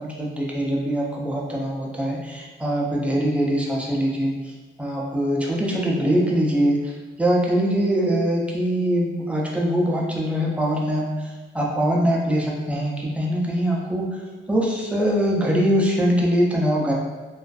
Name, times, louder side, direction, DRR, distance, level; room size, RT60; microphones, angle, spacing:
voice 1, 0.0-6.9 7.2-14.2 14.5-16.9, equal, 5° right, -3 dB, 0.4 m, -23 dB
2.4 x 2.3 x 2.3 m, 1.3 s
wide cardioid pair, 125°, 20 cm